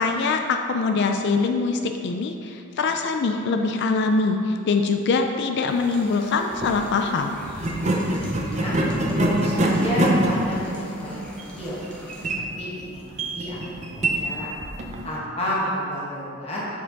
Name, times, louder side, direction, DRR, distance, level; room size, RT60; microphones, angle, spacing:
voice 1, 0.0-7.4, left 4 dB, 55° left, 5 dB, 0.3 m, -23 dB
sound 1, 5.7-12.3, equal, 5° left, 0.9 m, -42 dB
sound 2, 6.5-6.8 7.6-15.1, right 1 dB, 35° right, 0.6 m, -25 dB
voice 2, 8.1-8.8 9.2-11.3 11.6-11.8 12.6-13.9 14.2-14.5 15.0-16.6, equal, 30° left, -7 dB, 1.3 m, -30 dB
7.5 x 4.4 x 4.0 m, 2.6 s
head